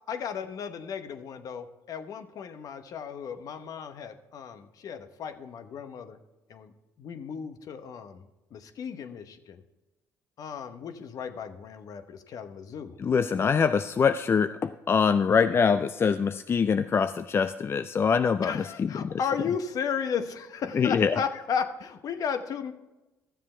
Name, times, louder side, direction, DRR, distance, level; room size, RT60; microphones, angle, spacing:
voice 1, 0.1-6.2 6.5-6.7 7.0-8.2 8.5-9.6 10.4-12.9 18.4-22.7, left 7 dB, 60° left, 9 dB, 0.9 m, -34 dB
voice 2, 13.0-19.2 20.7-21.2, left 6 dB, 35° left, 11 dB, 0.4 m, -24 dB
12.5 x 7.4 x 4.4 m, 1.0 s
supercardioid pair, 70°, 7 cm